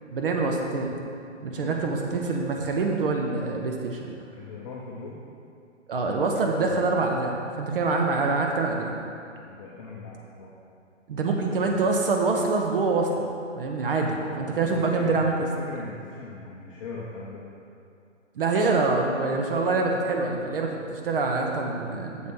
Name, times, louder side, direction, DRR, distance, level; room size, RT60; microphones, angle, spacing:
voice 1, 0.1-1.0 1.4-4.1 5.9-9.0 11.1-13.3 13.6-15.3 18.4-22.3, right 3 dB, 45° right, 1 dB, 1.0 m, -25 dB
voice 2, 1.4-2.0 4.3-5.2 9.5-10.5 11.4-11.9 14.4-17.4, left 3 dB, 25° left, -5 dB, 0.7 m, -40 dB
7.3 x 5.1 x 6.2 m, 2.5 s
hypercardioid pair, 150°, 37 cm